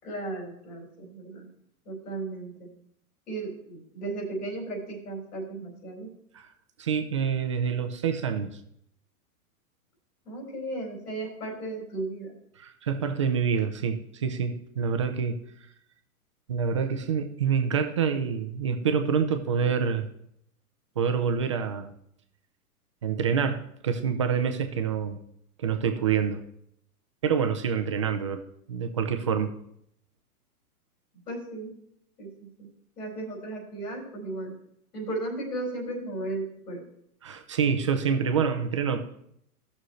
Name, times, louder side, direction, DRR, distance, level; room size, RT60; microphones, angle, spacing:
voice 1, 0.0-1.5 1.8-2.7 3.3-6.1 10.2-12.4 31.1-31.7 32.2-32.7 33.0-34.5 34.9-36.8, right 2 dB, 85° left, -1 dB, 4.4 m, -35 dB
voice 2, 6.8-8.6 12.6-15.4 16.5-20.1 21.0-21.9 23.0-25.2 25.6-26.4 27.2-28.4 28.7-29.5 37.2-39.1, right 6 dB, 25° right, 6 dB, 0.3 m, -27 dB
15.5 x 6.3 x 3.1 m, 0.73 s
hypercardioid pair, 140°, 45 cm